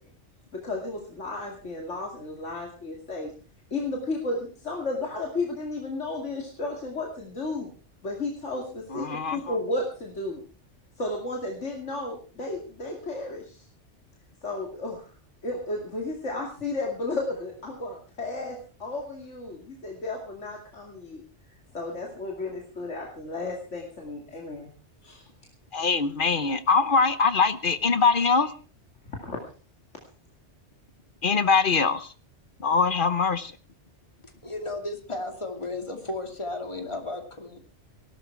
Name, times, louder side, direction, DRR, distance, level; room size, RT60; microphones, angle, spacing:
voice 1, 0.5-3.3 3.7-7.7 8.0-10.4 11.0-13.6 14.4-15.0 15.4-21.2 21.7-24.7 25.0-25.2 29.0-29.4, left 2 dB, 80° left, 0 dB, 2.8 m, -33 dB
voice 2, 8.9-9.6 25.7-28.5 31.2-32.1 32.6-33.5, left 4 dB, 45° left, 13 dB, 1.1 m, -23 dB
voice 3, 34.2-37.6, left 2 dB, 25° left, 5 dB, 2.6 m, -34 dB
18.0 x 12.5 x 4.6 m, 0.38 s
omnidirectional pair, 1.2 m